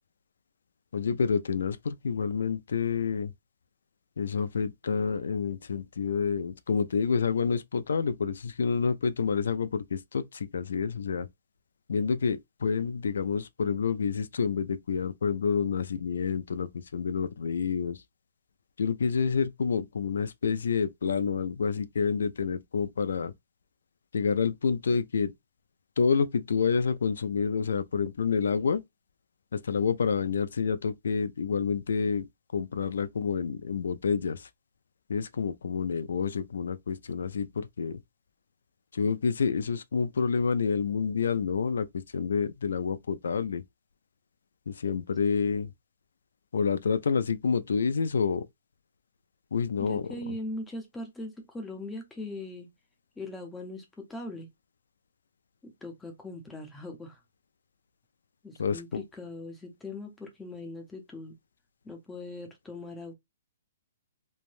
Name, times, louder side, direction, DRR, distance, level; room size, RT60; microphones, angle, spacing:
voice 1, 0.9-3.3 4.2-11.3 11.9-18.0 18.8-23.3 24.1-25.3 26.0-28.8 29.5-32.3 32.5-34.5 35.1-38.0 38.9-43.6 44.7-45.7 46.5-48.5 49.5-50.1 58.6-59.0, left 5 dB, 85° left, 0.3 m, -28 dB
voice 2, 49.8-52.7 53.2-53.8 54.1-54.5 55.6-57.2 58.4-61.3 61.8-63.1, left 2 dB, 5° left, 0.5 m, -40 dB
3.2 x 2.1 x 2.5 m
hypercardioid pair, 170°, 0 cm